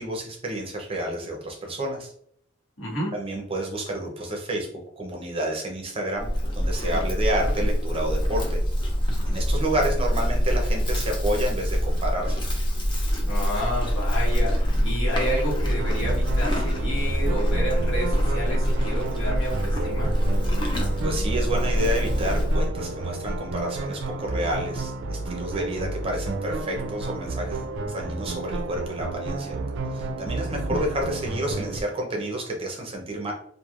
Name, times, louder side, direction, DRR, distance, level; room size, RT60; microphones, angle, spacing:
voice 1, 0.0-2.1 3.1-4.7 5.0-8.6 9.3-12.4 21.0-29.5 29.9-33.3, right 1 dB, 30° right, 0 dB, 0.6 m, -30 dB
voice 2, 2.8-3.1 13.3-20.1 30.7-30.8, equal, 70° left, -4 dB, 1.3 m, -30 dB
Livestock farm animals working animals, 6.2-22.7, equal, 25° left, 0.6 m, -24 dB
sound 1, 15.8-31.8, right 2 dB, 65° right, 0.4 m, -31 dB
3.1 x 2.5 x 2.4 m, 0.66 s
head